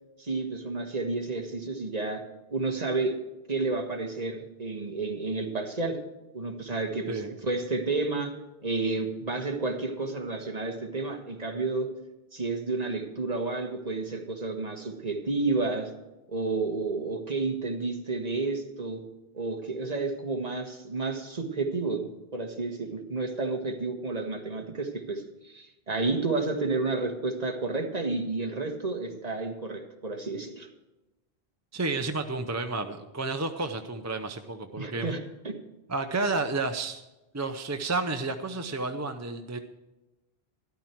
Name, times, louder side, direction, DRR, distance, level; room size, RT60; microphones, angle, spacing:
voice 1, 0.2-3.1 3.5-6.0 6.3-8.4 8.6-11.9 12.3-15.9 16.3-19.0 19.3-22.0 22.3-30.7 34.8-35.2 35.4-35.5, right 3 dB, 40° right, 3 dB, 1.5 m, -31 dB
voice 2, 31.7-35.1 35.9-37.0 37.3-39.6, right 3 dB, 20° right, 7 dB, 0.5 m, -31 dB
13.0 x 12.0 x 4.5 m, 1.0 s
omnidirectional pair, 1.0 m